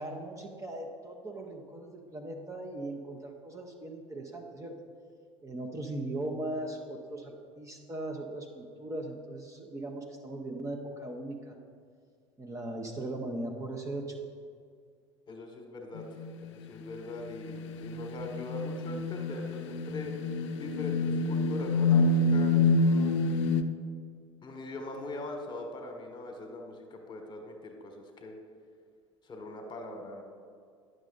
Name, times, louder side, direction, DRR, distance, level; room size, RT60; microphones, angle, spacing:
voice 1, 0.0-4.7 5.4-11.6 12.4-14.1, right 1 dB, 20° right, 2 dB, 0.9 m, -39 dB
voice 2, 15.3-20.2 20.6-23.1 24.4-28.4 29.2-30.2, left 1 dB, 30° left, 3 dB, 1.4 m, -41 dB
sound 1, 15.9-16.5 17.2-23.6, left 3 dB, 65° left, 0.5 m, -27 dB
10.0 x 6.5 x 3.9 m, 2.1 s
figure-of-eight pair, 70°, 16 cm